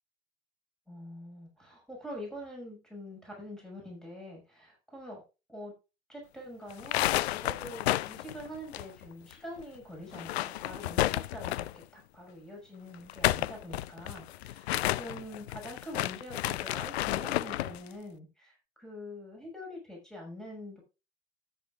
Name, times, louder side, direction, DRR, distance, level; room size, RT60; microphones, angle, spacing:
voice 1, 0.9-5.2 5.5-5.7 6.1-20.8, left 1 dB, ahead, -1 dB, 5.8 m, -45 dB
sound 1, 6.7-9.3 9.6-9.7 10.1-11.8 12.9-17.8, left 15 dB, 75° left, 0.5 m, -31 dB
13.0 x 8.9 x 2.5 m, 0.29 s
figure-of-eight pair, 70°, 32 cm